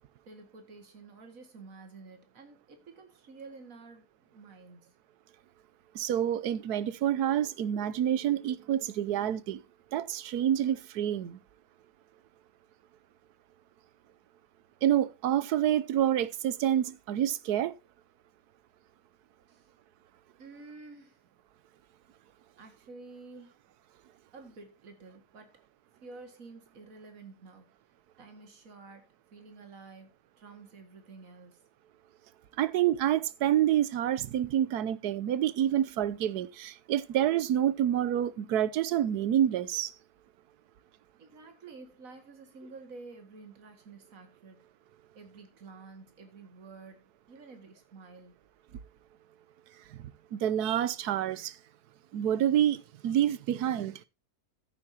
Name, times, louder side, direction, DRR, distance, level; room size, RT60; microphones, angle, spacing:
voice 1, 0.3-4.9 19.5-19.7 20.4-21.2 22.6-23.6 24.3-25.5 26.0-27.7 28.2-31.6 41.2-44.6 45.1-48.3, right 3 dB, 60° right, 2.5 m, -50 dB
voice 2, 5.9-9.6 9.9-11.4 14.8-17.7 32.6-39.9 49.9-51.6 52.1-54.0, right 11 dB, 85° right, 1.3 m, -28 dB
14.5 x 8.7 x 2.8 m
omnidirectional pair, 1.7 m